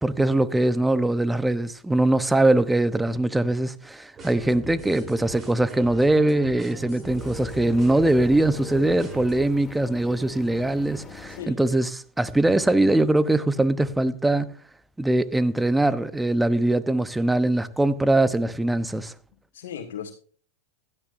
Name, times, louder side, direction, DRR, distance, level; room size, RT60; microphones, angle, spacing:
voice 1, 0.0-14.5 15.0-19.1, right 2 dB, 5° right, 0.9 m, -22 dB
sound 1, 4.2-9.4, right 1 dB, 25° right, 3.9 m, -39 dB
sound 2, 7.1-11.5, left 5 dB, 20° left, 2.9 m, -42 dB
voice 2, 8.7-9.1 11.3-11.6 19.5-20.1, left 8 dB, 70° left, 2.2 m, -38 dB
16.0 x 13.0 x 2.7 m
hypercardioid pair, 105°, 0 cm